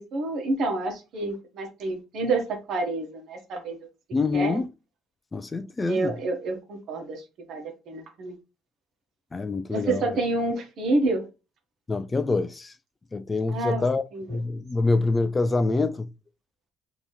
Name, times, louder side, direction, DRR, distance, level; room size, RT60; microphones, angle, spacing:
voice 1, 0.0-3.8 4.3-4.6 5.9-7.2 7.5-8.3 9.7-11.2 13.5-13.8 14.1-14.4, right 2 dB, 60° right, 1.4 m, -28 dB
voice 2, 4.1-4.7 5.3-6.1 9.3-10.2 11.9-12.7 13.1-14.0 14.3-16.1, left 3 dB, 20° left, 0.3 m, -25 dB
3.5 x 2.9 x 4.1 m
cardioid pair, 130°, 0 cm